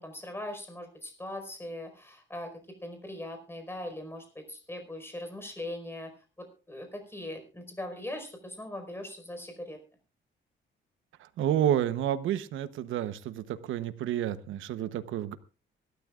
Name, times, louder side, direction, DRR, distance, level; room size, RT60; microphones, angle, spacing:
voice 1, 0.0-2.5 2.8-6.1 6.4-9.8, left 1 dB, 10° left, 6 dB, 4.8 m, -40 dB
voice 2, 11.2-15.4, right 11 dB, 85° right, 12 dB, 1.0 m, -30 dB
24.0 x 13.0 x 2.5 m, 0.34 s
cardioid pair, 90°, 20 cm